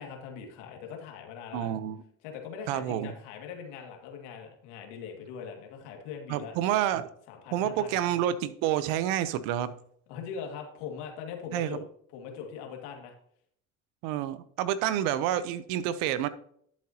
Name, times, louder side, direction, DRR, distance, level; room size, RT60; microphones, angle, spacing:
voice 1, 0.0-1.7 2.2-6.5 7.3-8.0 10.1-11.8 12.1-13.1, left 7 dB, 90° left, 2.2 m, -41 dB
voice 2, 1.5-2.0 2.7-3.1 6.3-7.1 7.5-9.7 11.5-11.8 14.0-16.3, right 11 dB, 85° right, 0.8 m, -28 dB
11.5 x 7.6 x 2.9 m
supercardioid pair, 75°, 34 cm